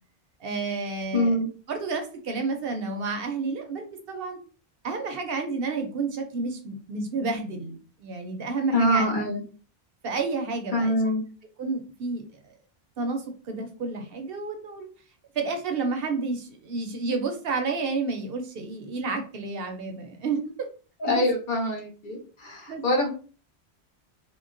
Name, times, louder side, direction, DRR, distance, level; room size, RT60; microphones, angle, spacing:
voice 1, 0.4-1.4 1.7-4.4 4.8-9.2 10.0-11.0 11.6-12.2 13.0-14.9 15.3-20.4 21.0-21.2 22.7-22.8, right 4 dB, 65° right, 5 dB, 0.7 m, -30 dB
voice 2, 1.1-1.5 8.7-9.4 10.7-11.2 21.0-23.1, left 1 dB, 50° left, 1 dB, 0.8 m, -24 dB
3.6 x 2.1 x 2.5 m, 0.38 s
omnidirectional pair, 1.1 m